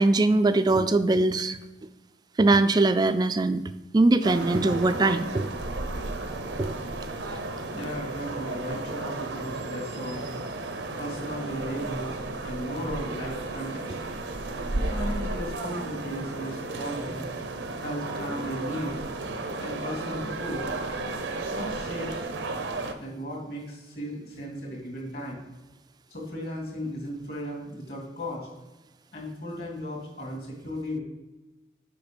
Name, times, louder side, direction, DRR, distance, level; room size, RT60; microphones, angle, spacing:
voice 1, 0.0-1.6 2.4-3.6 3.9-5.5 6.6-6.8, right 2 dB, 20° right, 11 dB, 0.3 m, -21 dB
sound 1, 4.2-22.9, right 2 dB, 80° right, 0.7 m, -33 dB
voice 2, 7.7-10.2 11.0-12.2 12.4-14.0 14.7-17.3 17.8-18.9 19.6-20.7 21.5-22.2 23.0-25.4 26.1-28.5 29.1-31.0, equal, 55° left, -1 dB, 2.4 m, -35 dB
7.0 x 5.1 x 5.1 m, 1.1 s
head